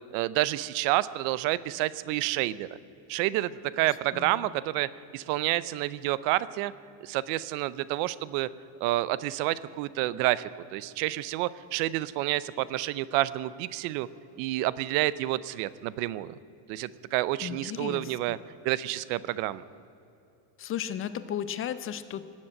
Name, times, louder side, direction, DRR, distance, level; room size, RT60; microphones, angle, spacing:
voice 1, 0.0-2.7 3.1-6.7 7.0-8.5 8.8-14.1 14.4-16.4 16.7-18.4 18.6-19.6, right 16 dB, 80° right, 18 dB, 0.7 m, -29 dB
voice 2, 4.1-4.5 17.4-18.4 20.6-22.3, left 9 dB, 30° left, 13 dB, 0.4 m, -35 dB
19.0 x 7.6 x 8.7 m, 2.8 s
cardioid pair, 160°, 45 cm